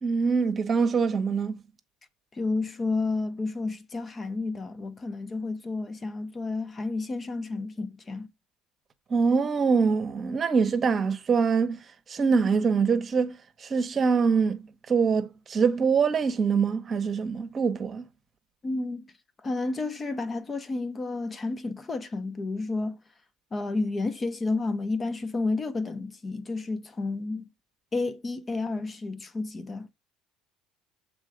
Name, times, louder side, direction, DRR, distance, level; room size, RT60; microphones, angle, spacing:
voice 1, 0.0-1.5 9.1-11.8 12.1-18.1, right 5 dB, 40° right, 1.0 m, -24 dB
voice 2, 2.3-8.3 18.6-19.0 19.4-23.0 23.5-27.5 27.9-29.9, left 3 dB, 30° left, 0.9 m, -31 dB
7.4 x 3.9 x 5.0 m
hypercardioid pair, 65°, 0 cm